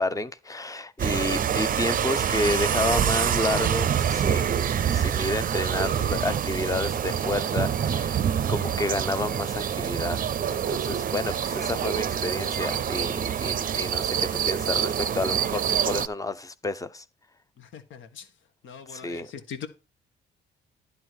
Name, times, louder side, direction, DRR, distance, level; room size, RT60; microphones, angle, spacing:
voice 1, 0.0-8.2 8.5-10.2 10.5-17.0 18.9-19.3, left 2 dB, 15° left, 0.7 m, -30 dB
sound 1, 1.0-16.1, right 8 dB, 45° right, 0.5 m, -26 dB
voice 2, 17.6-18.3 18.6-19.7, left 7 dB, 75° left, 1.4 m, -41 dB
11.0 x 3.8 x 6.2 m
cardioid pair, 90°, 20 cm